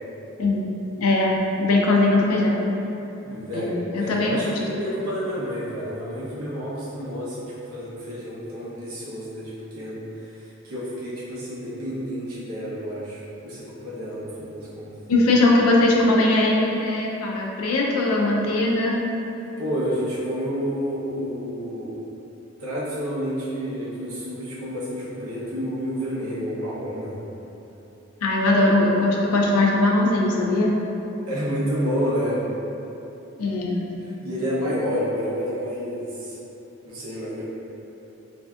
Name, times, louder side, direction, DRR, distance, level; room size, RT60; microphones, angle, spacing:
voice 1, 0.4-0.7 1.0-2.6 3.5-4.5 15.1-19.0 28.2-30.8 33.4-33.8, left 2 dB, 90° left, -2 dB, 0.4 m, -20 dB
voice 2, 3.2-14.9 19.6-22.0 22.6-27.2 31.3-32.4 34.2-36.4 36.8-37.4, equal, 85° right, -8 dB, 0.7 m, -29 dB
3.3 x 2.6 x 2.3 m, 3.0 s
head